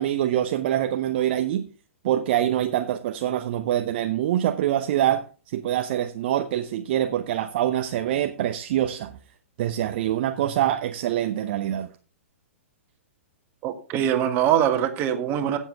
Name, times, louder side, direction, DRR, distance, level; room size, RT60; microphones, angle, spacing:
voice 1, 0.0-1.7 2.0-5.2 5.5-9.2 9.6-11.9, right 11 dB, 45° right, 8 dB, 0.8 m, -25 dB
voice 2, 13.6-15.6, right 10 dB, 30° right, 6 dB, 1.8 m, -23 dB
16.5 x 7.4 x 3.6 m, 0.38 s
figure-of-eight pair, 115°, 7 cm